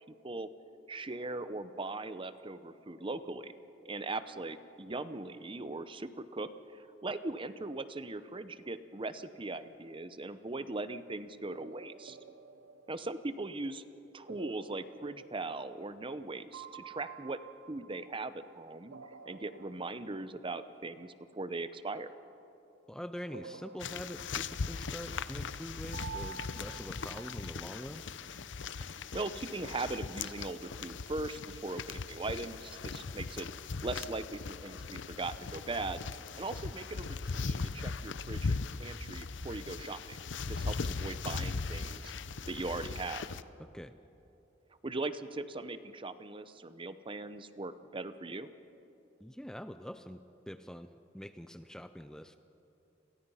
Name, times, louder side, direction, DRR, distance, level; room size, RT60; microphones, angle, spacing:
voice 1, 0.9-3.6 3.8-12.2 12.9-13.8 14.1-17.4 17.7-18.9 19.2-22.1 29.0-33.5 33.8-36.0 36.4-40.2 40.5-42.1 42.5-43.3 44.8-48.5, right 2 dB, 30° right, 12 dB, 0.8 m, -39 dB
sound 1, 10.5-11.1 11.6-13.7 14.3-16.3 16.5-18.5 18.9-20.7 23.3-25.2 25.9-27.9, right 6 dB, 90° right, 1.1 m, -50 dB
voice 2, 22.9-28.0 43.7-43.9 49.2-50.2 50.5-52.4, equal, 5° left, 10 dB, 0.5 m, -44 dB
sound 2, 23.8-43.4, left 4 dB, 75° left, 0.7 m, -39 dB
30.0 x 22.5 x 5.6 m, 2.9 s
head